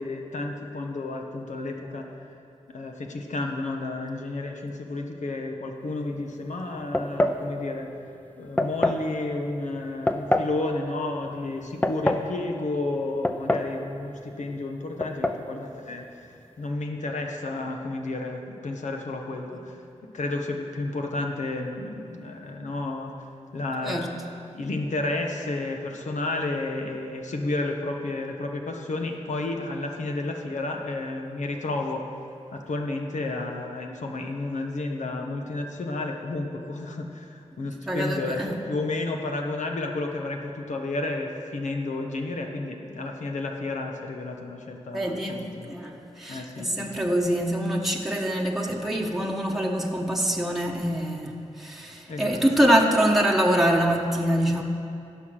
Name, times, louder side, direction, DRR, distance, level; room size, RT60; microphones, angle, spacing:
voice 1, 0.0-2.1 2.7-7.9 8.4-16.3 16.6-19.8 20.1-23.1 23.5-24.1 24.5-32.0 32.5-45.7 46.3-46.9 52.1-52.4, left 2 dB, 85° left, 2 dB, 1.2 m, -31 dB
sound 1, 6.9-7.4 8.6-9.0 10.1-10.5 11.6-12.3 13.2-13.8 14.0-14.1 15.0-15.4, left 1 dB, 15° left, 0.6 m, -24 dB
voice 2, 37.9-38.6 44.9-45.4 45.7-54.6, equal, ahead, -1 dB, 1.1 m, -24 dB
16.0 x 5.9 x 6.3 m, 2.6 s
wide cardioid pair, 75°, 12 cm